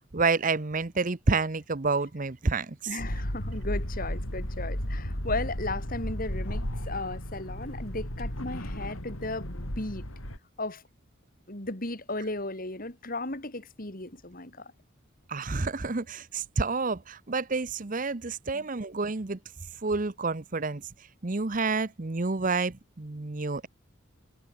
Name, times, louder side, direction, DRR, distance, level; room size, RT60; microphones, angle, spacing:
voice 1, 0.1-2.9 15.3-19.4 19.8-20.9 21.2-23.7, right 3 dB, 40° right, 0.8 m, -29 dB
voice 2, 2.9-10.1 10.6-10.8 11.5-14.7 18.5-18.7, left 2 dB, 45° left, 3.1 m, -35 dB
sound 1, 3.0-10.4, equal, 90° left, 7.0 m, -34 dB
head